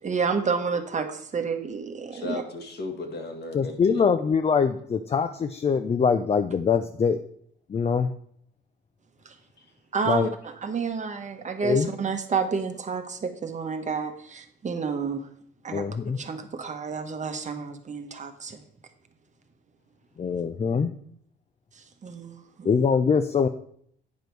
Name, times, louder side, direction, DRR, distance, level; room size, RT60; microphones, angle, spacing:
voice 1, 0.0-2.4 9.2-9.3 9.9-15.3 15.6-15.9 16.1-18.6 21.8-22.7, right 5 dB, 35° right, 7 dB, 1.1 m, -30 dB
voice 2, 2.1-4.4 9.6-9.7, left 3 dB, 55° left, 4 dB, 1.8 m, -36 dB
voice 3, 3.5-7.2 7.7-8.1 10.1-10.3 11.6-11.9 15.7-16.2 20.2-20.9 22.6-23.5, left 6 dB, 30° left, 9 dB, 0.5 m, -23 dB
9.4 x 5.0 x 4.6 m, 0.66 s
cardioid pair, 90°, 20 cm